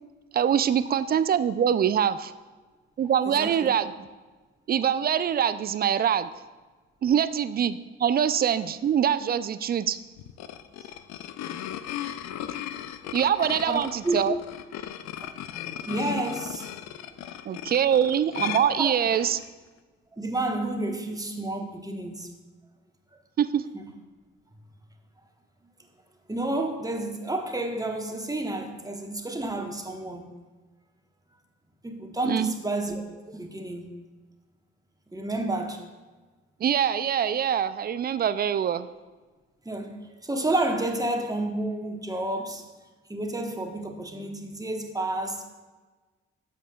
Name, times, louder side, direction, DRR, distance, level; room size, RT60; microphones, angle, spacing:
voice 1, 0.3-2.3 3.0-4.1 4.7-6.3 7.0-10.0 13.1-14.3 17.5-19.4 23.4-23.6 32.2-32.5 36.6-38.9, right 9 dB, 30° right, 14 dB, 0.3 m, -24 dB
voice 2, 3.3-3.7 13.7-14.2 15.2-16.7 18.8-18.9 20.1-22.3 23.7-23.9 26.3-30.3 31.8-33.0 33.3-33.9 35.1-35.8 39.6-42.7 43.1-45.4, right 2 dB, 10° right, 4 dB, 1.1 m, -30 dB
sound 1, 10.2-19.5, left 11 dB, 55° left, 0.5 m, -37 dB
11.0 x 7.4 x 2.3 m, 1.3 s
figure-of-eight pair, 45°, 33 cm